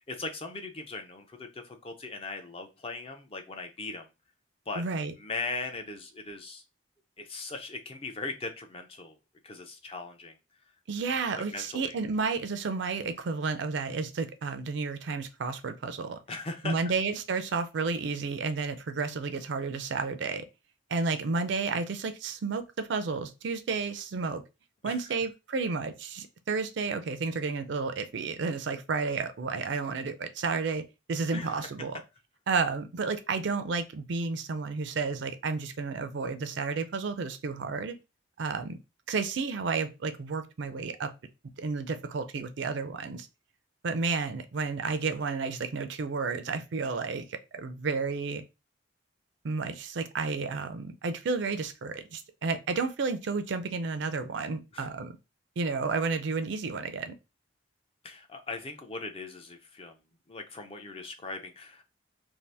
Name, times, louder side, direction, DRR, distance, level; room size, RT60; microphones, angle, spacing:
voice 1, 0.1-4.1 4.7-4.8 5.2-6.6 7.2-9.2 9.4-10.4 11.3-12.0 13.9-14.0 16.3-16.8 24.8-25.0 31.3-31.7 54.7-54.9 58.0-60.0 60.3-61.8, left 3 dB, 30° left, 0.4 m, -39 dB
voice 2, 4.8-5.1 10.9-16.2 16.6-20.5 20.9-24.4 24.8-32.0 32.5-38.0 38.4-38.8 39.1-41.1 41.6-43.3 43.8-48.4 49.4-55.2 55.6-57.1, right 4 dB, 65° right, 0.4 m, -31 dB
2.7 x 2.5 x 3.3 m
head